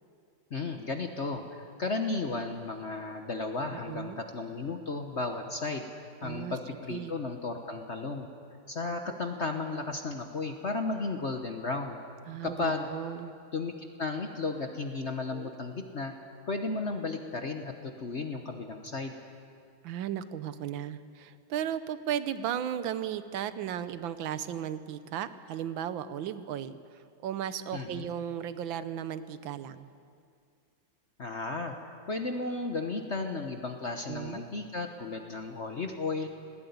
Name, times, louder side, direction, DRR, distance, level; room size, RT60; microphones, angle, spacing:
voice 1, 0.5-8.3 8.7-12.0 12.4-12.9 13.5-16.1 16.5-19.1 27.7-28.1 31.2-36.3, left 3 dB, 45° left, 4 dB, 1.2 m, -34 dB
voice 2, 3.7-4.2 6.2-6.6 6.9-7.2 9.1-9.2 12.3-13.3 15.3-15.5 19.8-29.9 34.1-34.4, right 10 dB, 85° right, 12 dB, 1.6 m, -35 dB
19.0 x 17.0 x 9.5 m, 2.3 s
omnidirectional pair, 2.1 m